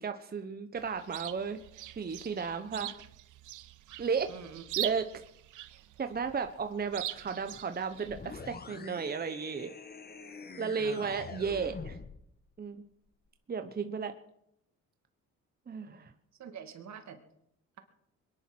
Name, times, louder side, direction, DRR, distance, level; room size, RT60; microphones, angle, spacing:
voice 1, 0.0-1.6 2.0-2.9 4.0-4.3 4.8-5.1 6.0-9.7 10.6-12.0 12.6-12.8 13.5-14.1 15.7-16.1, right 5 dB, 30° right, 8 dB, 1.0 m, -34 dB
Chirp tweet, 0.8-8.4, right 14 dB, 85° right, 1.0 m, -42 dB
voice 2, 4.3-4.6 10.8-11.2 15.9-16.1 16.4-17.2, right 7 dB, 65° right, 7 dB, 2.3 m, -46 dB
sound 1, 8.1-12.2, left 4 dB, 30° left, 1.6 m, -45 dB
22.0 x 10.5 x 6.2 m, 0.77 s
cardioid pair, 90°, 30 cm